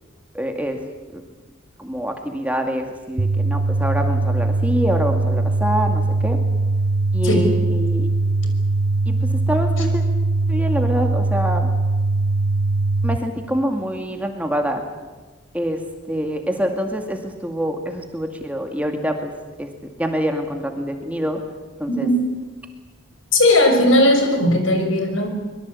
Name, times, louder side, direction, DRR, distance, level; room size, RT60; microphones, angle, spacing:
voice 1, 0.3-0.8 1.1-1.2 1.8-6.4 7.1-8.1 9.1-10.0 10.5-11.7 13.0-14.8 15.5-15.8 16.1-19.3 19.6-19.7 20.0-21.4 21.8-22.1, equal, 5° right, 4 dB, 2.2 m, -25 dB
sound 1, 3.2-13.2, right 3 dB, 40° right, 0.9 m, -21 dB
voice 2, 23.3-25.3, left 1 dB, 75° left, 5 dB, 6.2 m, -17 dB
24.5 x 22.5 x 8.5 m, 1.3 s
head